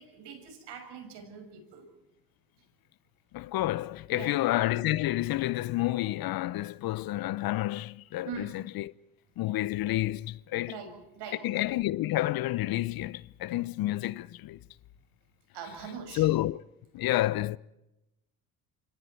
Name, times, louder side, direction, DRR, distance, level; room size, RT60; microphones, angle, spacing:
voice 1, 0.0-1.9 4.1-4.4 8.2-8.6 10.7-11.5 15.5-16.3, right 6 dB, 65° right, 6.5 m, -42 dB
voice 2, 3.3-8.9 9.4-10.8 11.4-14.6 16.1-16.6 16.9-17.6, left 16 dB, 55° left, 0.8 m, -29 dB
27.5 x 25.0 x 4.6 m
supercardioid pair, 75°, 44 cm